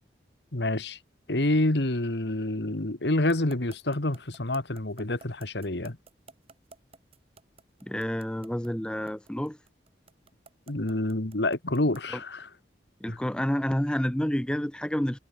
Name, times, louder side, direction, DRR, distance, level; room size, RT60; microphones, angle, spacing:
voice 1, 0.5-1.0 1.3-6.0 10.7-12.5 13.1-13.2, left 1 dB, 65° left, 1.9 m, -27 dB
sound 1, 3.3-12.2, right 4 dB, 35° right, 4.1 m, -52 dB
voice 2, 7.8-9.6 13.0-15.2, equal, 5° left, 0.6 m, -29 dB
head